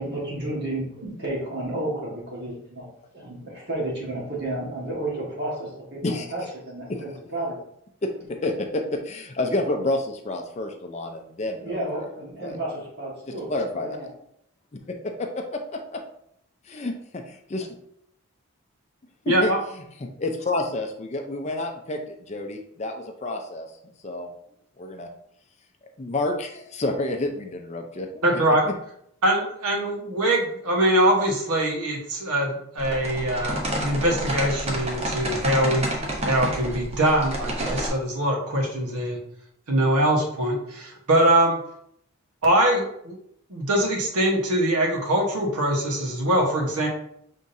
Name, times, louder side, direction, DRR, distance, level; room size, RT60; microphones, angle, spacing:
voice 1, 0.0-2.9 3.1-7.6 11.6-14.1, right 1 dB, 50° right, -4 dB, 1.6 m, -32 dB
voice 2, 8.4-12.1 12.4-12.6 13.5-14.0 15.2-15.6 15.9-16.0 16.7-16.9 17.5-17.7 19.2-19.5 20.2-22.0 22.3-23.7 24.0-24.3 24.8-25.1 26.0-28.1, left 2 dB, 30° left, 4 dB, 0.4 m, -29 dB
voice 3, 19.3-19.6 28.2-28.6 29.2-35.9 36.2-39.2 39.7-41.6 42.4-43.1 43.5-46.9, right 1 dB, 90° right, 0 dB, 1.2 m, -23 dB
sound 1, 32.8-37.9, equal, 30° right, 0.7 m, -29 dB
5.5 x 3.6 x 2.6 m, 0.72 s
head